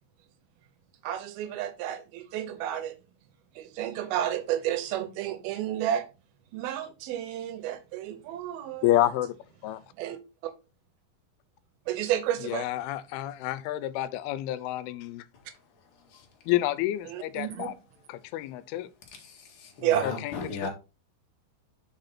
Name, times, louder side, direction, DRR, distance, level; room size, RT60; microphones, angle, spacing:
voice 1, 1.0-3.0 3.6-6.1 6.5-9.0 10.0-10.2 10.4-10.5 11.9-12.7 17.1-17.8 19.8-20.1, right 11 dB, 80° right, 2.6 m, -31 dB
voice 2, 8.8-9.4 9.6-9.8 12.4-15.3 16.5-17.7 18.1-18.9 20.0-20.3, left 14 dB, 90° left, 2.6 m, -29 dB
voice 3, 15.8-16.3 19.1-20.7, left 4 dB, 45° left, 2.3 m, -38 dB
5.7 x 5.4 x 4.2 m
omnidirectional pair, 4.3 m